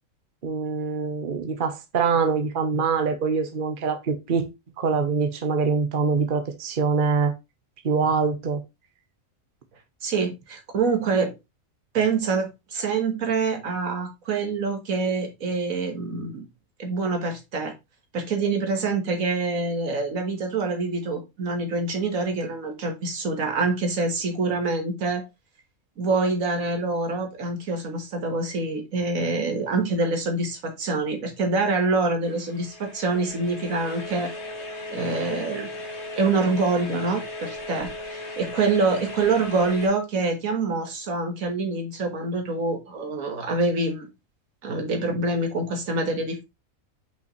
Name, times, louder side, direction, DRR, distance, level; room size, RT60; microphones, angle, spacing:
voice 1, 0.4-4.5 4.8-7.3 7.8-8.6, right 5 dB, 45° right, 1.0 m, -24 dB
voice 2, 10.0-11.3 11.9-16.5 16.8-17.7 18.1-25.3 26.0-34.3 34.9-35.7 36.2-44.1 44.6-46.4, right 3 dB, 80° right, 1.8 m, -26 dB
sound 1, 32.2-39.9, left 1 dB, 55° left, 1.6 m, -37 dB
5.5 x 5.5 x 3.1 m
omnidirectional pair, 1.4 m